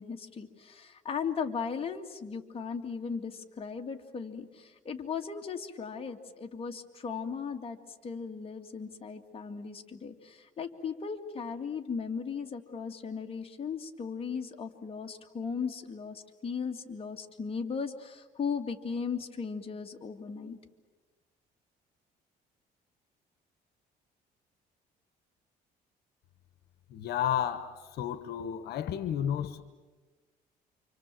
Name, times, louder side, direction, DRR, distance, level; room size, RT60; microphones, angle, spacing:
voice 1, 0.0-20.6, left 6 dB, 35° left, 2.3 m, -37 dB
voice 2, 26.9-29.6, left 10 dB, 75° left, 1.3 m, -32 dB
29.0 x 25.5 x 7.7 m
cardioid pair, 110°, 17 cm